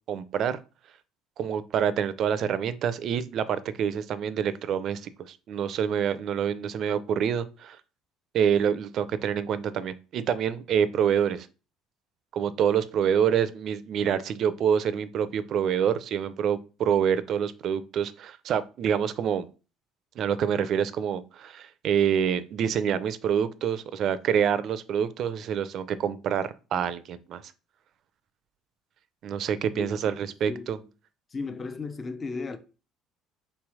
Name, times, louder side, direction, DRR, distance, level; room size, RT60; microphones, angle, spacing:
voice 1, 0.1-0.6 1.4-7.8 8.3-11.5 12.3-19.5 20.2-27.4 29.2-30.8, right 8 dB, 55° right, 0.5 m, -26 dB
voice 2, 29.8-30.7 31.3-32.6, left 4 dB, 30° left, 0.5 m, -36 dB
3.4 x 3.2 x 4.7 m
supercardioid pair, 95°, 0 cm